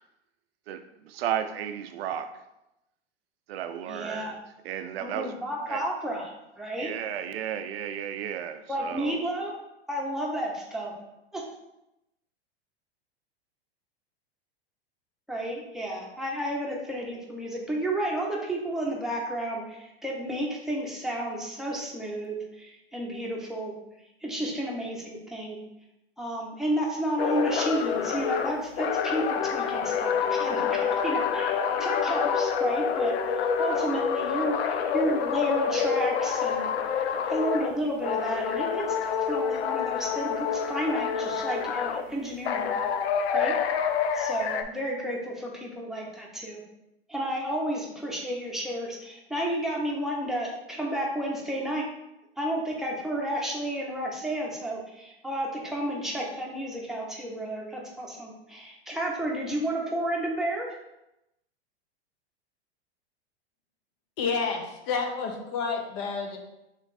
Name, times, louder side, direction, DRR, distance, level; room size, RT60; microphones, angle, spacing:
voice 1, 0.7-2.4 3.5-4.4 4.6-5.4 5.7-5.8 6.8-9.2, right 9 dB, 70° right, 0.5 m, -34 dB
voice 2, 3.9-4.3 5.0-6.9 8.7-9.6 9.9-10.9 11.3-11.4 15.3-23.7 24.2-25.6 26.2-36.7 36.9-42.7 43.3-43.6 44.1-46.6 47.1-51.9 52.4-60.8, right 1 dB, ahead, 0.9 m, -32 dB
sound 1, 27.2-37.7 38.0-42.0 42.4-44.6, left 7 dB, 75° left, 0.5 m, -27 dB
voice 3, 64.2-66.4, left 5 dB, 50° left, 0.8 m, -29 dB
3.3 x 3.1 x 4.1 m
hypercardioid pair, 110°, 32 cm